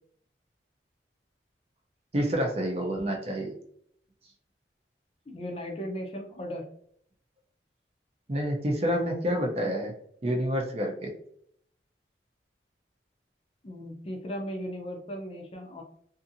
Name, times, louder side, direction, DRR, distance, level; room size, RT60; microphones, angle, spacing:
voice 1, 2.1-3.5 8.3-9.9 10.2-11.1, equal, 35° right, 1 dB, 0.6 m, -28 dB
voice 2, 5.3-6.6 13.6-15.8, equal, 35° left, 2 dB, 0.5 m, -37 dB
2.6 x 2.6 x 2.6 m, 0.64 s
head